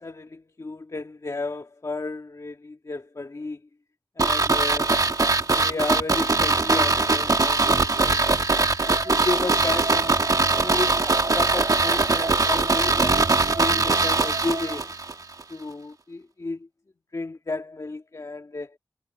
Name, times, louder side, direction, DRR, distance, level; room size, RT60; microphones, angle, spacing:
voice 1, 0.0-3.6 4.2-5.0 5.6-8.4 8.9-10.2 10.6-11.0 11.3-14.9 15.5-16.7 17.1-18.8, left 3 dB, 50° left, 1.8 m, -32 dB
sound 1, 4.2-15.1 15.4-15.5, right 3 dB, 55° right, 1.6 m, -21 dB
sound 2, 8.8-14.8, right 3 dB, 70° right, 3.5 m, -36 dB
sound 3, 9.9-14.5, right 1 dB, 25° right, 5.2 m, -40 dB
wide cardioid pair, 65°, 7 cm